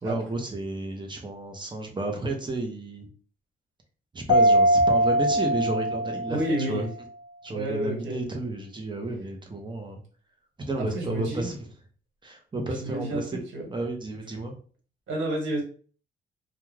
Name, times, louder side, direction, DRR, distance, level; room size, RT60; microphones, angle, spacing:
voice 1, 0.0-3.1 4.1-6.4 6.7-6.8 7.4-10.0 10.7-11.6 12.2-13.4 13.7-14.5, right 2 dB, 25° right, 3 dB, 0.7 m, -31 dB
Mallet percussion, 4.3-6.8, right 1 dB, 90° left, 0.5 m, -22 dB
voice 2, 6.2-6.9 7.5-8.2 10.8-11.5 12.8-13.7 15.1-15.6, right 1 dB, 70° right, -1 dB, 1.4 m, -30 dB
2.4 x 2.3 x 3.2 m, 0.41 s
cardioid pair, 90°, 20 cm